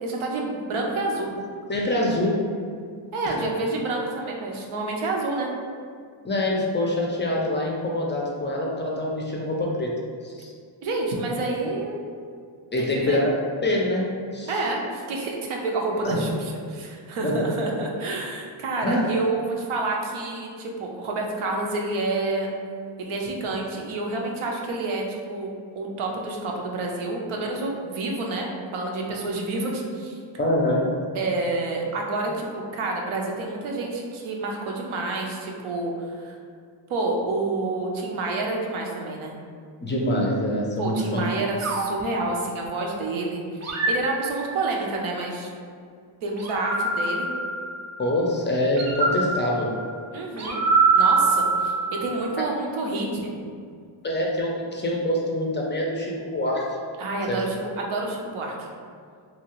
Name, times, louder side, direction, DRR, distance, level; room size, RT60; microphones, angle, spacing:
voice 1, 0.0-1.3 3.1-5.5 10.8-12.0 12.8-13.2 14.5-22.5 23.0-30.2 31.1-36.4 36.9-39.3 40.8-43.4 43.7-45.5 46.2-47.3 50.1-50.6 50.9-51.7 52.0-53.3 57.0-58.7, right 2 dB, 80° right, 0 dB, 0.6 m, -28 dB
voice 2, 1.7-2.4 3.3-3.4 6.2-9.9 10.2-10.5 12.7-13.3 13.6-14.6 16.0-16.2 17.2-17.4 18.8-19.2 30.4-30.9 39.8-41.4 48.0-49.8 52.4-52.5 54.0-56.7 57.3-57.5, left 1 dB, 25° left, -2 dB, 0.4 m, -25 dB
sound 1, 41.6-43.0 43.6-44.9 46.4-48.1 48.8-52.3, right 3 dB, 35° right, 0.5 m, -25 dB
2.7 x 2.3 x 2.9 m, 2.1 s
cardioid pair, 85°, 48 cm